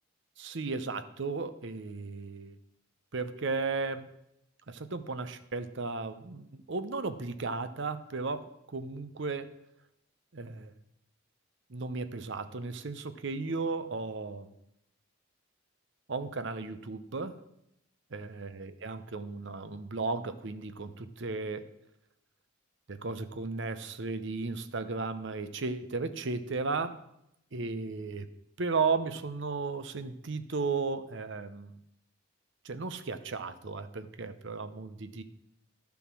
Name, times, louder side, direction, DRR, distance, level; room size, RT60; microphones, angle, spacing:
voice 1, 0.4-2.6 3.1-4.1 4.7-9.5 10.3-10.7 11.7-14.5 16.1-17.4 18.1-21.6 22.9-27.0 27.5-28.3 28.6-31.7 32.6-35.2, right 4 dB, 55° right, 11 dB, 0.7 m, -35 dB
11.5 x 7.0 x 6.1 m, 0.83 s
head